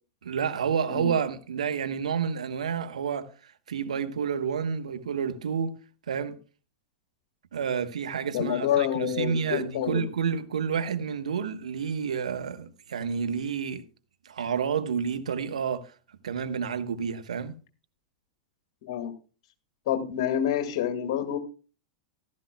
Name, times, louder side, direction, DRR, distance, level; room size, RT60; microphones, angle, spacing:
voice 1, 0.2-5.7 6.1-6.4 7.5-13.8 14.2-15.9 16.2-17.5, right 7 dB, 75° right, 1.1 m, -30 dB
voice 2, 8.3-10.1 18.8-19.1 19.9-21.4, left 10 dB, 60° left, 1.9 m, -27 dB
15.0 x 13.0 x 2.2 m
figure-of-eight pair, 95°, 4 cm